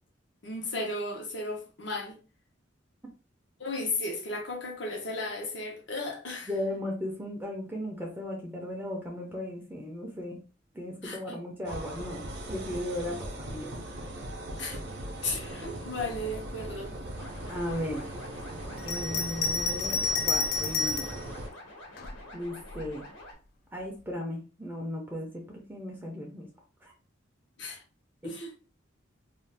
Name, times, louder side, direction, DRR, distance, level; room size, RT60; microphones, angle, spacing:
voice 1, 0.4-2.1 3.6-6.5 11.0-11.2 14.6-14.8 15.2-16.9 27.6-27.8 28.2-28.5, left 2 dB, 65° left, 0.8 m, -34 dB
voice 2, 6.5-10.4 10.7-13.7 17.5-18.1 18.8-21.2 22.3-23.0 23.7-26.5 26.8-26.9, left 1 dB, 10° right, 0.5 m, -36 dB
sound 1, 11.6-21.5, right 1 dB, 60° right, 0.6 m, -39 dB
sound 2, 17.1-23.3, left 1 dB, 85° left, 1.2 m, -48 dB
Bell, 18.8-21.2 22.0-22.9, left 4 dB, 50° left, 0.3 m, -30 dB
2.5 x 2.4 x 3.3 m
head